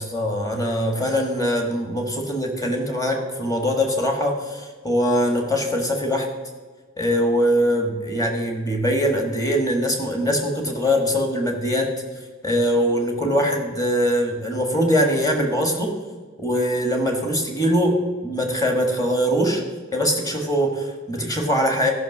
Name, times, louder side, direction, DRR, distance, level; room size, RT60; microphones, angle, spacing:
voice 1, 0.0-6.3 7.0-11.9 12.4-15.9 16.4-19.6 19.9-21.9, equal, 15° left, 3 dB, 1.5 m, -22 dB
13.0 x 5.8 x 6.1 m, 1.4 s
head